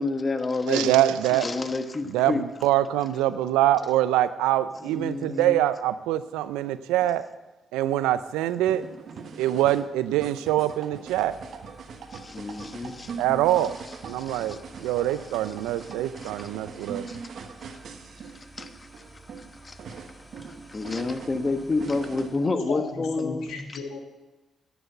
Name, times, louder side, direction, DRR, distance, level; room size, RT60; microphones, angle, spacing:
voice 1, 0.0-1.0 1.3-2.4 4.9-5.6 12.1-13.1 14.2-14.6 16.2-16.3 17.1-17.2 18.3-18.7 19.6-19.8 20.7-23.5, left 3 dB, 35° left, 9 dB, 1.1 m, -29 dB
voice 2, 0.7-1.5 2.1-7.3 7.7-8.8 9.4-11.4 13.2-13.8 14.0-17.1, right 13 dB, 85° right, 14 dB, 0.4 m, -24 dB
sound 1, 8.7-22.3, right 5 dB, 65° right, 1.1 m, -41 dB
sound 2, 11.0-22.6, right 1 dB, 5° left, 2.3 m, -52 dB
voice 3, 22.7-24.0, left 4 dB, 75° left, 3 dB, 1.7 m, -35 dB
10.0 x 7.1 x 7.9 m, 1.1 s
hypercardioid pair, 45°, 0 cm